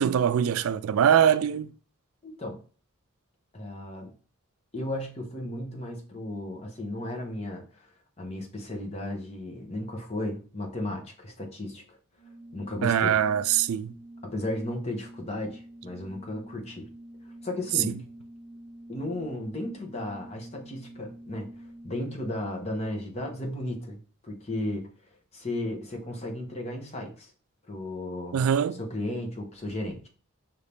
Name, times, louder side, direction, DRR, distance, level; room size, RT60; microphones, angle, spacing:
voice 1, 0.0-1.7 12.8-13.9 28.3-28.8, right 8 dB, 85° right, 0.3 m, -23 dB
voice 2, 2.2-2.6 3.5-4.1 4.7-12.0 12.5-13.1 14.2-16.9 17.4-18.0 18.9-24.9 25.3-27.3 27.7-28.5 28.8-30.1, left 1 dB, 30° left, 0.9 m, -35 dB
Organ, 12.1-22.4, right 1 dB, 80° left, 1.7 m, -47 dB
5.8 x 2.7 x 3.4 m
head